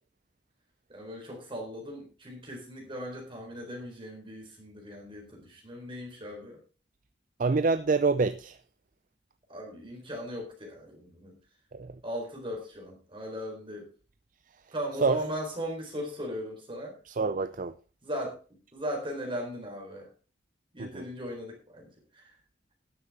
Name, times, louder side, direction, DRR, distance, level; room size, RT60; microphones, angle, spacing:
voice 1, 0.9-6.6 9.5-11.4 12.0-13.9 14.7-16.9 18.0-18.4 18.7-20.1 20.7-22.3, equal, 30° right, 4.0 m, -38 dB
voice 2, 7.4-8.6 11.7-11.9 15.0-15.2 17.1-17.7 20.8-21.1, right 4 dB, 45° right, 0.5 m, -26 dB
12.5 x 10.5 x 3.7 m
head